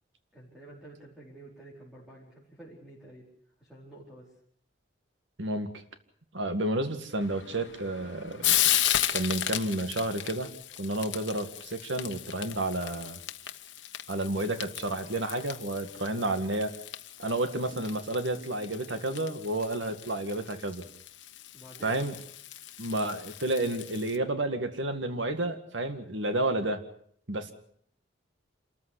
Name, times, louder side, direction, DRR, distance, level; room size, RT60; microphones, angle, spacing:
voice 1, 0.3-3.3 3.6-4.3 21.5-22.0, right 2 dB, ahead, -5 dB, 4.7 m, -49 dB
voice 2, 5.4-5.7 6.3-8.7 9.1-10.5 10.8-13.2 14.1-16.8 17.2-20.9 21.8-22.1 22.8-26.8 27.3-27.5, right 1 dB, 80° right, 8 dB, 2.0 m, -31 dB
Frying (food), 7.2-24.2, left 12 dB, 90° left, 1.2 m, -35 dB
27.0 x 14.0 x 8.2 m, 0.64 s
head